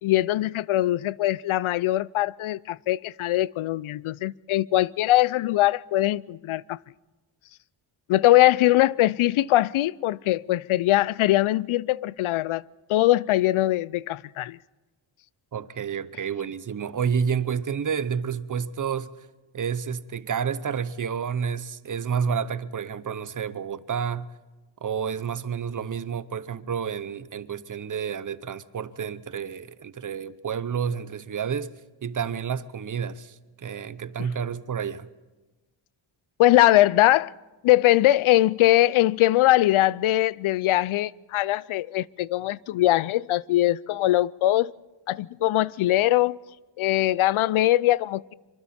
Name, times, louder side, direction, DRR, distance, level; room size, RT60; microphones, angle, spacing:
voice 1, 0.0-6.8 8.1-12.6 12.9-14.6 36.4-37.3 37.6-44.7 45.1-46.4 46.8-48.3, left 15 dB, 80° left, 0.5 m, -21 dB
voice 2, 15.5-19.1 19.5-24.3 24.8-31.7 32.0-35.1, right 7 dB, 40° right, 0.8 m, -30 dB
25.5 x 24.0 x 4.3 m
wide cardioid pair, 115°, 48 cm